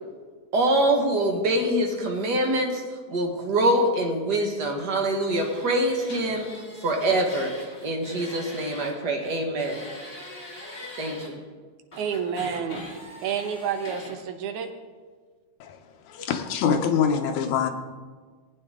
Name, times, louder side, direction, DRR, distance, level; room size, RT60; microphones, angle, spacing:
voice 1, 0.5-2.8 3.1-6.5 6.8-7.5 7.8-9.8 11.0-11.4, right 1 dB, 45° right, 1 dB, 1.5 m, -24 dB
sound 1, 5.3-8.9 9.2-11.3 11.9-14.1, left 1 dB, 20° left, 1.9 m, -42 dB
voice 2, 12.0-12.8 13.2-14.7, right 7 dB, 80° right, 6 dB, 2.4 m, -29 dB
voice 3, 16.1-17.7, left 7 dB, 80° left, 6 dB, 2.3 m, -24 dB
18.0 x 9.3 x 3.7 m, 1.5 s
omnidirectional pair, 3.4 m